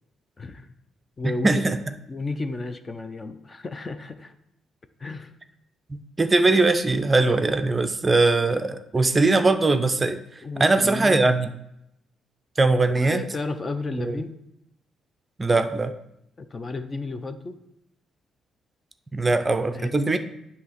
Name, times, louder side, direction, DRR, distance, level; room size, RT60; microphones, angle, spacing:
voice 1, 0.4-0.7 1.2-1.6 2.1-4.3 5.0-5.3 9.0-9.1 10.4-11.3 12.9-14.4 16.4-17.6 19.3-19.5 19.7-20.2, left 3 dB, 30° left, 10 dB, 0.5 m, -33 dB
voice 2, 1.4-1.8 5.9-10.2 10.6-11.5 12.6-13.2 14.0-14.1 15.4-15.9 19.1-20.2, right 3 dB, 25° right, 9 dB, 0.4 m, -21 dB
8.1 x 2.8 x 5.8 m, 0.83 s
cardioid pair, 90°, 0 cm